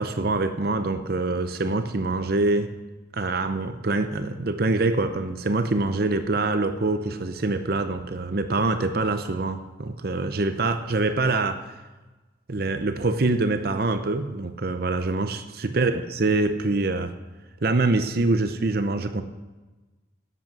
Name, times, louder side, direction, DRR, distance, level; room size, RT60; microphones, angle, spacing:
voice 1, 0.0-2.7 3.1-11.6 12.5-17.1 17.6-19.2, right 2 dB, 50° right, 8 dB, 0.7 m, -25 dB
11.0 x 8.0 x 6.0 m, 1.2 s
head